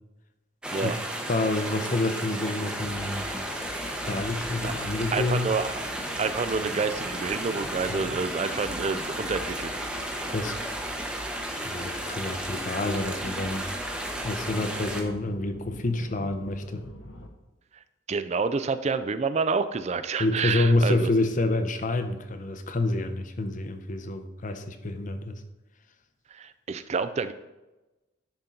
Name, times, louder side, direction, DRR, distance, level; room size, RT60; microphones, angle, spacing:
sound 1, 0.6-15.0, right 1 dB, 5° right, 0.7 m, -33 dB
voice 1, 1.3-3.3 4.0-5.5 7.9-8.1 10.3-10.6 11.5-13.7 14.2-16.8 20.2-25.4, left 2 dB, 40° left, 8 dB, 0.6 m, -28 dB
sound 2, 2.6-17.3, equal, 75° left, 0.9 m, -45 dB
voice 2, 5.1-5.7 6.2-9.7 18.1-21.1 26.3-27.3, right 4 dB, 35° right, 12 dB, 0.4 m, -28 dB
10.5 x 4.4 x 3.8 m, 1.1 s
head